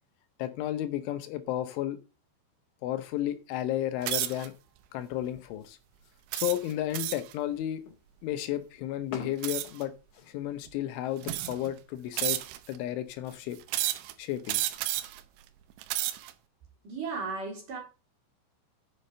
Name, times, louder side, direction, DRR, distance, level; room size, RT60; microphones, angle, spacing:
voice 1, 0.4-2.0 2.8-4.5 4.9-5.8 6.3-7.8 8.2-9.9 10.3-12.4 12.7-13.6 14.2-14.6, left 13 dB, 80° left, 3.2 m, -32 dB
sound 1, 3.0-10.6, left 5 dB, 50° left, 2.6 m, -52 dB
sound 2, 4.0-4.5 5.1-5.4 6.3-7.3 9.4-9.8 10.7-10.8 11.2-11.7 12.2-12.8 13.7-14.1 14.5-15.2 15.7-16.3, right 14 dB, 75° right, 2.8 m, -31 dB
voice 2, 16.8-17.8, right 4 dB, 50° right, 3.4 m, -35 dB
7.4 x 7.2 x 6.7 m
omnidirectional pair, 5.7 m